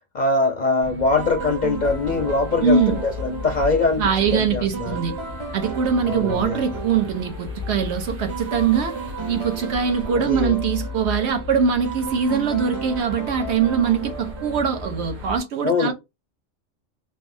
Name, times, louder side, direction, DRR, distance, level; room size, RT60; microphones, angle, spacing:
voice 1, 0.1-5.0 6.0-6.6 10.2-10.6 15.6-15.9, left 3 dB, 50° left, 0.5 m, -22 dB
sound 1, 0.8-15.4, left 4 dB, 90° right, 1.6 m, -35 dB
sound 2, 1.2-15.4, right 4 dB, 35° right, 0.5 m, -35 dB
voice 2, 2.6-3.0 4.0-5.1 5.5-8.9 9.3-15.9, right 6 dB, 65° right, 0.9 m, -22 dB
3.3 x 2.0 x 2.5 m
omnidirectional pair, 1.3 m